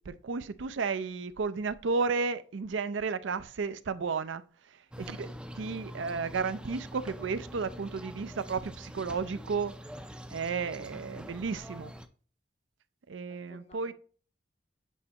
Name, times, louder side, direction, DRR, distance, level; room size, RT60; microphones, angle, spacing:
voice 1, 0.1-4.4 5.0-9.7 10.3-11.9 13.1-13.9, right 4 dB, 75° right, 0.5 m, -33 dB
sound 1, 4.9-12.1, equal, 5° right, 0.4 m, -44 dB
voice 2, 13.3-13.9, left 3 dB, 35° left, 0.8 m, -57 dB
8.2 x 4.3 x 2.9 m
head